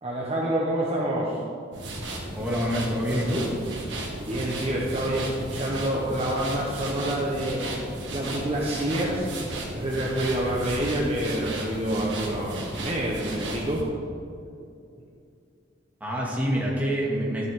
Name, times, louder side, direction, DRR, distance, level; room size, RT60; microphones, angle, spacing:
voice 1, 0.0-1.4 4.2-7.6 8.1-9.3 9.7-13.8, right 1 dB, 35° right, -4 dB, 1.1 m, -27 dB
sound 1, 1.7-13.8, right 1 dB, 75° right, 2.0 m, -34 dB
voice 2, 2.3-3.5 16.0-17.5, equal, 10° right, -5 dB, 2.2 m, -26 dB
13.0 x 8.1 x 3.7 m, 2.5 s
head